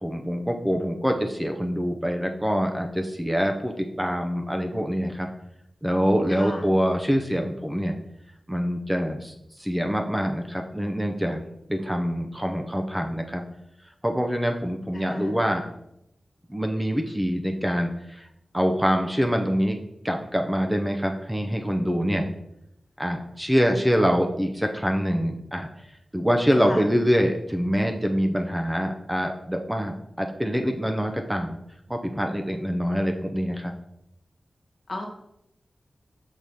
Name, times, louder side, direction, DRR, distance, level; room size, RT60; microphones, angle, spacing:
voice 1, 0.0-5.3 5.8-7.9 8.5-11.4 11.7-13.4 14.0-15.7 16.5-18.3 18.5-19.8 20.0-22.3 23.0-25.7 26.1-31.6 31.9-33.7, equal, 10° right, 3 dB, 0.6 m, -25 dB
voice 2, 6.3-6.6 14.9-15.3 26.6-26.8 34.9-35.1, left 1 dB, 60° left, 0 dB, 1.3 m, -34 dB
6.4 x 2.9 x 5.3 m, 0.81 s
wide cardioid pair, 80°, 0 cm